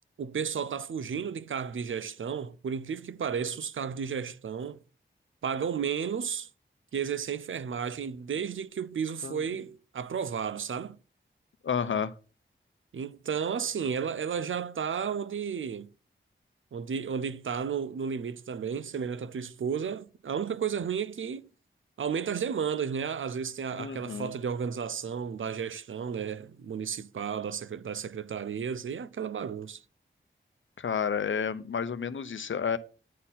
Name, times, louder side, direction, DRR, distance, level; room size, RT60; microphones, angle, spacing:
voice 1, 0.2-4.8 5.4-6.5 6.9-11.0 12.9-15.9 16.7-21.5 22.0-29.8, right 7 dB, 80° right, 0.6 m, -33 dB
voice 2, 11.6-12.1 23.7-24.3 30.8-32.8, left 7 dB, 70° left, 0.7 m, -31 dB
9.3 x 4.3 x 5.6 m
wide cardioid pair, 95°, 20 cm